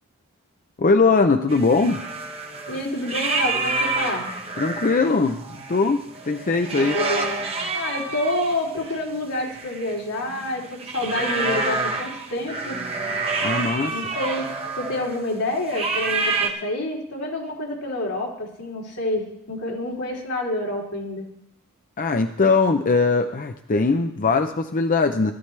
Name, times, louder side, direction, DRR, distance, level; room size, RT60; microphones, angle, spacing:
voice 1, 0.8-2.0 4.6-7.0 13.4-13.9 22.0-25.3, left 4 dB, 35° left, 6 dB, 0.6 m, -20 dB
sound 1, 1.5-15.2 15.7-16.5, right 3 dB, 25° right, 1.4 m, -28 dB
voice 2, 2.7-4.3 6.7-7.4 7.7-12.8 13.9-14.5 14.7-21.3, left 1 dB, 80° left, -3 dB, 3.4 m, -28 dB
16.0 x 13.0 x 3.3 m, 0.77 s
head